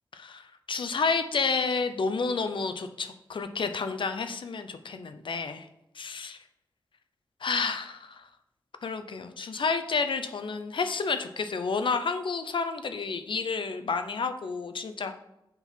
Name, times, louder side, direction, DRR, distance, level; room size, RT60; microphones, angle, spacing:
voice 1, 0.2-5.7 6.0-6.4 7.4-8.3 8.8-15.1, left 4 dB, 65° left, 8 dB, 0.6 m, -30 dB
7.2 x 3.8 x 5.6 m, 0.88 s
wide cardioid pair, 105°, 9 cm